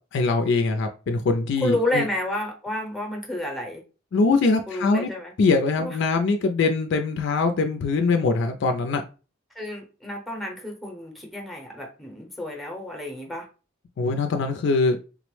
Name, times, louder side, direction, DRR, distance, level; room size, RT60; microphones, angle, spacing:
voice 1, 0.1-2.0 4.1-5.1 5.4-9.0 14.0-15.0, left 3 dB, 60° left, 5 dB, 0.3 m, -22 dB
voice 2, 1.6-3.8 4.7-5.3 5.8-6.0 9.5-13.5, left 1 dB, ahead, 1 dB, 0.7 m, -30 dB
3.6 x 2.0 x 3.1 m, 0.34 s
head